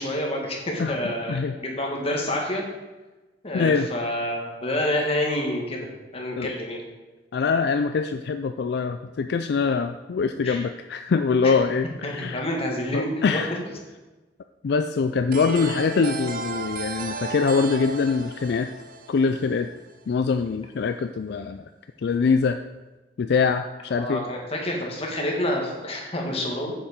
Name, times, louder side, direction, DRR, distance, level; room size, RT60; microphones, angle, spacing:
voice 1, 0.0-2.6 3.4-6.8 10.4-10.6 11.4-11.5 12.0-13.4 23.9-26.7, left 1 dB, 35° left, 0 dB, 1.8 m, -28 dB
voice 2, 3.5-3.9 6.4-6.5 7.3-12.4 12.9-13.6 14.6-18.7 19.1-19.7 20.1-21.6 22.0-22.6 23.2-24.2, left 5 dB, 65° left, 8 dB, 0.4 m, -23 dB
sound 1, 15.3-19.9, right 3 dB, 55° right, 0.7 m, -34 dB
7.3 x 7.3 x 5.2 m, 1.2 s
head